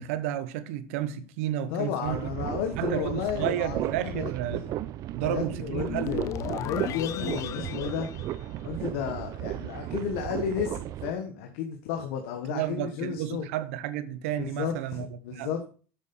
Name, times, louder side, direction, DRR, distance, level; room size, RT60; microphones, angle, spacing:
voice 1, 0.0-2.3 2.8-4.6 5.1-6.2 12.5-15.5, right 12 dB, 85° right, 1.0 m, -32 dB
voice 2, 1.7-4.7 5.2-6.3 6.6-8.1 8.6-13.4 14.4-15.6, left 8 dB, 80° left, 1.3 m, -33 dB
sound 1, 2.0-11.1, right 14 dB, 55° right, 0.6 m, -34 dB
sound 2, 5.9-9.1, left 13 dB, 45° left, 0.4 m, -35 dB
7.6 x 6.8 x 5.4 m
supercardioid pair, 120°, 7 cm